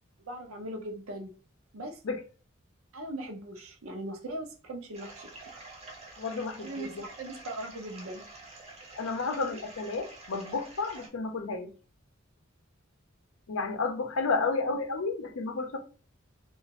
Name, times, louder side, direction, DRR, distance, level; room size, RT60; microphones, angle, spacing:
voice 1, 0.3-1.3 1.7-2.0 2.9-5.3 5.5-5.6 6.6-8.2 14.4-14.5, right 1 dB, 80° right, 0.7 m, -39 dB
sound 1, 4.9-11.1, right 2 dB, 30° right, 0.7 m, -48 dB
voice 2, 6.2-6.9 8.9-11.7 13.5-15.8, left 3 dB, 75° left, 0.6 m, -31 dB
2.8 x 2.4 x 2.8 m
head